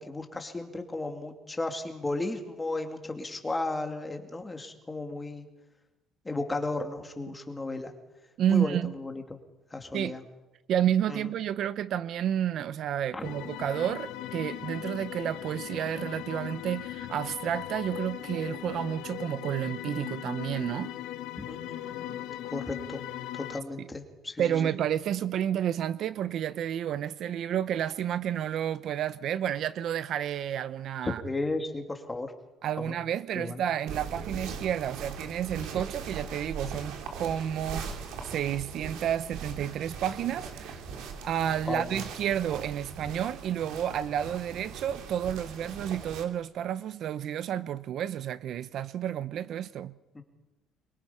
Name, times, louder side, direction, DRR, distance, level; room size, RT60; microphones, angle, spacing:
voice 1, 0.0-5.5 6.2-7.9 8.5-9.4 9.7-10.2 11.1-11.2 13.1-13.2 21.4-23.0 23.3-24.7 31.0-32.3 32.8-32.9 33.3-33.6 41.7-42.0 50.1-50.2, left 2 dB, 10° left, 2.4 m, -34 dB
voice 2, 8.4-8.9 9.9-10.2 10.7-20.9 23.8-23.9 24.4-31.2 32.6-40.8 41.2-50.0, right 10 dB, 50° right, 0.6 m, -30 dB
sound 1, 13.2-23.6, left 12 dB, 85° left, 1.2 m, -38 dB
sound 2, 33.9-46.2, right 5 dB, 85° right, 2.9 m, -40 dB
25.0 x 22.5 x 5.6 m
cardioid pair, 160°, 0 cm